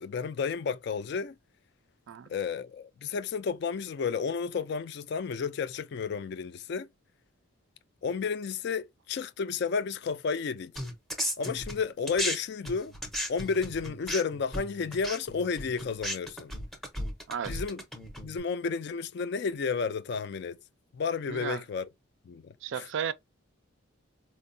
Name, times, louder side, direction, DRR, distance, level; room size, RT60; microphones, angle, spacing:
voice 1, 0.0-1.3 2.3-6.9 8.0-10.7 11.4-12.9 13.3-16.5 17.5-17.8 18.2-20.6 20.9-21.9 22.3-22.9, left 5 dB, 50° left, 0.3 m, -32 dB
sound 1, 10.8-12.4 12.6-18.4, equal, ahead, 0.6 m, -35 dB
voice 2, 17.3-17.6 21.3-21.6 22.6-23.1, right 8 dB, 60° right, 0.3 m, -34 dB
4.4 x 2.1 x 2.6 m
head